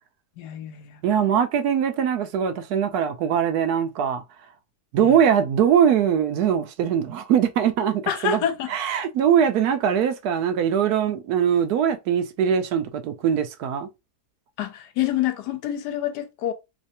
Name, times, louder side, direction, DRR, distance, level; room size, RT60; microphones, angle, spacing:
voice 1, 0.4-1.0 5.0-5.2 8.1-8.7 14.6-16.5, left 11 dB, 85° left, 1.2 m, -27 dB
voice 2, 1.0-4.2 4.9-8.4 8.7-13.9, right 8 dB, 75° right, 1.0 m, -21 dB
3.2 x 3.1 x 2.8 m
omnidirectional pair, 1.8 m